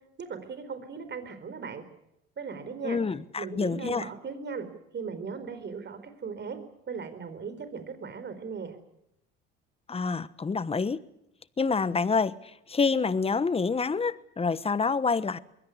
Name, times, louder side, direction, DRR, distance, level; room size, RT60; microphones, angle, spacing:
voice 1, 0.2-1.8 2.4-3.0 3.4-4.7 4.9-6.6 6.9-8.8, right 5 dB, 35° right, 4.5 m, -38 dB
voice 2, 2.8-4.1 9.9-11.0 11.6-12.4 12.7-15.4, left 4 dB, 20° left, 1.2 m, -27 dB
22.0 x 17.0 x 9.7 m
supercardioid pair, 85°, 29 cm